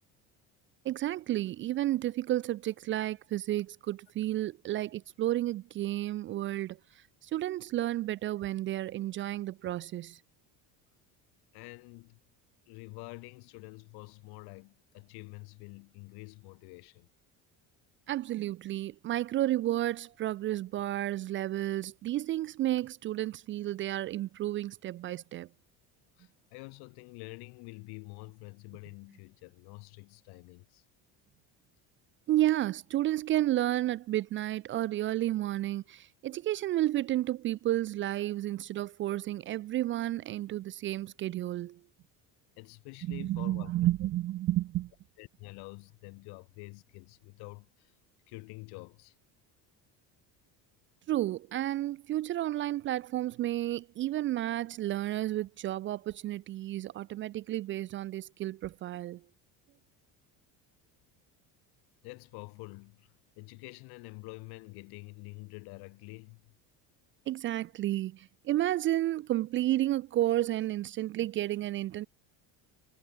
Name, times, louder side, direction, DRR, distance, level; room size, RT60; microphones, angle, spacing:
voice 1, 0.8-10.2 18.1-25.5 32.3-41.8 43.0-44.9 51.1-59.2 67.3-72.1, right 14 dB, 35° right, 0.4 m, -31 dB
voice 2, 11.5-12.2 12.7-17.1 26.2-30.8 42.6-43.7 45.2-47.9 48.3-49.1 62.0-66.5, left 28 dB, 75° left, 3.1 m, -47 dB
cardioid pair, 175°, 39 cm